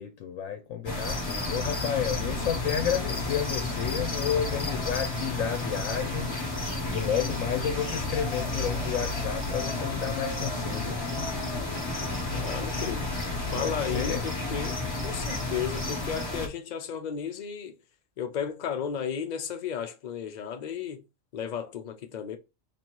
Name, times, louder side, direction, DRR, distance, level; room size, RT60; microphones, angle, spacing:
voice 1, 0.0-11.0 13.6-14.2, left 9 dB, 85° left, 1.0 m, -31 dB
sound 1, 0.9-16.5, left 2 dB, 25° left, 0.9 m, -31 dB
voice 2, 12.3-13.1 13.5-17.8 18.2-21.0 21.3-22.4, left 7 dB, 45° left, 0.6 m, -34 dB
3.1 x 2.8 x 4.4 m
omnidirectional pair, 1.4 m